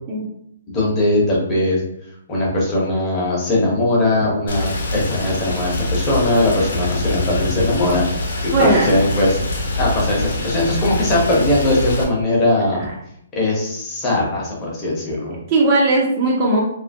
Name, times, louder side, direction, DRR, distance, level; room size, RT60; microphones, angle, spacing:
voice 1, 0.7-1.8 2.3-8.0 8.4-9.4 9.8-12.8 13.3-15.4, left 1 dB, 20° left, -4 dB, 0.8 m, -19 dB
Rain, 4.5-12.0, left 2 dB, 75° left, 0.7 m, -24 dB
voice 2, 8.5-8.9 15.5-16.6, right 2 dB, 25° right, -3 dB, 0.4 m, -17 dB
2.6 x 2.4 x 2.6 m, 0.74 s
hypercardioid pair, 165°, 0 cm